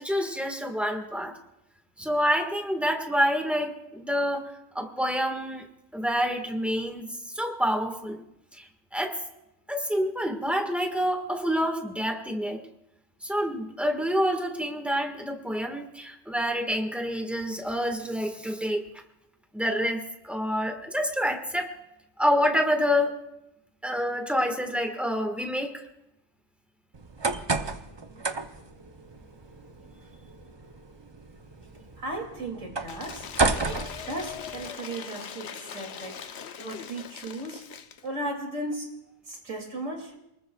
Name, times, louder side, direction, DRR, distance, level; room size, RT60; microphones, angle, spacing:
voice 1, 0.0-1.3 2.0-5.6 5.9-8.2 8.5-9.2 9.7-12.6 13.2-18.8 19.5-21.7 22.2-23.2 23.8-25.8, equal, ahead, 4 dB, 1.5 m, -27 dB
sound 1, 26.9-34.7, right 3 dB, 30° right, 0.5 m, -32 dB
voice 2, 32.0-33.3 33.6-33.8 34.1-37.6 38.0-38.9 39.3-40.1, right 1 dB, 70° right, 2 dB, 3.1 m, -36 dB
Cheering / Applause / Crowd, 32.8-38.1, left 8 dB, 60° left, 0.9 m, -41 dB
28.0 x 20.0 x 2.4 m, 0.86 s
omnidirectional pair, 1.4 m